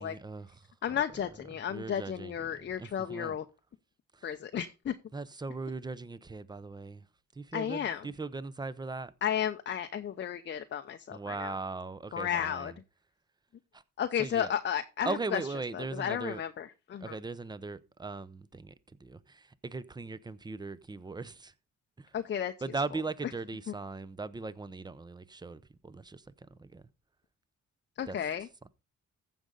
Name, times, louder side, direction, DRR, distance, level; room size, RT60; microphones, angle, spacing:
voice 1, 0.0-1.0 1.7-2.4 2.8-3.4 4.1-4.3 5.1-7.1 7.3-9.1 11.1-12.7 13.7-13.8 14.2-14.5 15.0-16.4 17.0-18.7 19.0-21.5 22.0-22.1 22.6-26.9 28.1-28.2, right 3 dB, 15° right, 0.7 m, -39 dB
voice 2, 0.8-3.4 4.2-4.9 7.5-8.1 9.2-11.5 12.1-12.7 14.0-15.4 15.7-17.2 22.1-22.5 28.0-28.5, left 9 dB, 40° left, 0.6 m, -33 dB
14.5 x 5.3 x 3.8 m
cardioid pair, 90°, 30 cm